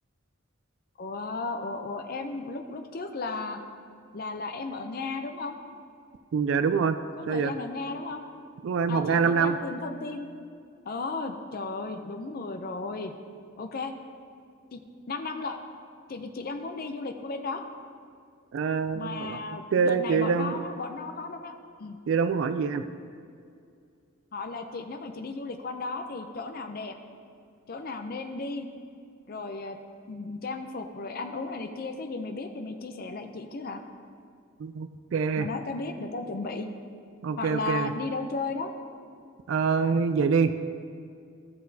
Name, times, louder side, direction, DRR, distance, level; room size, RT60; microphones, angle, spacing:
voice 1, 1.0-3.6 4.1-5.5 7.2-8.2 8.9-10.3 10.9-13.1 13.6-13.9 14.7-14.8 15.1-15.6 16.1-17.6 18.9-21.5 21.8-22.0 24.3-26.9 27.7-28.7 29.3-29.8 30.1-33.8 35.4-36.7 37.4-38.7, left 3 dB, 45° left, 5 dB, 0.5 m, -35 dB
voice 2, 6.3-7.0 7.3-7.5 8.6-9.6 18.5-19.4 19.7-20.6 22.1-22.8 34.6-35.5 37.2-37.9 39.5-40.5, right 5 dB, 65° right, 11 dB, 0.3 m, -25 dB
13.5 x 6.5 x 2.7 m, 2.3 s
head